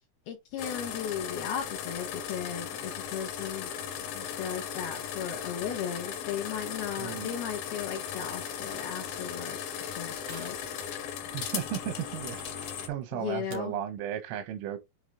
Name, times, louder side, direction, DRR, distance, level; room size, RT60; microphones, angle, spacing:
voice 1, 0.3-3.7 4.1-10.9 13.1-13.7, left 8 dB, 80° left, 2.2 m, -36 dB
sound 1, 0.6-12.9, left 8 dB, 65° left, 2.4 m, -37 dB
voice 2, 7.0-7.3 11.3-12.4 12.8-14.8, right 10 dB, 85° right, 3.6 m, -35 dB
sound 2, 8.7-9.0 10.1-10.8 12.2-12.9 13.5-13.6, right 5 dB, 70° right, 1.4 m, -50 dB
8.6 x 3.1 x 3.8 m
omnidirectional pair, 5.7 m